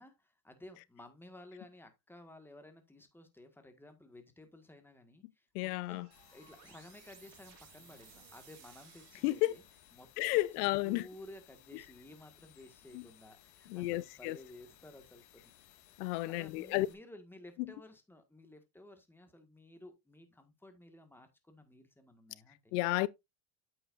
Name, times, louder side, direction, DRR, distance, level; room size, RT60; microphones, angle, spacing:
voice 1, 0.0-9.6 9.9-10.1 10.8-15.8 16.3-22.7, left 1 dB, 5° left, 1.7 m, -55 dB
voice 2, 5.5-6.1 9.2-9.5 10.2-11.1 12.9-13.0 13.7-14.4 16.0-16.9 17.6-17.7 22.7-23.1, left 19 dB, 90° left, 0.7 m, -32 dB
sound 1, 5.8-10.1, right 11 dB, 60° right, 2.1 m, -60 dB
sound 2, 6.1-16.9, left 12 dB, 70° left, 2.0 m, -62 dB
8.6 x 8.1 x 2.5 m
cardioid pair, 130°, 45 cm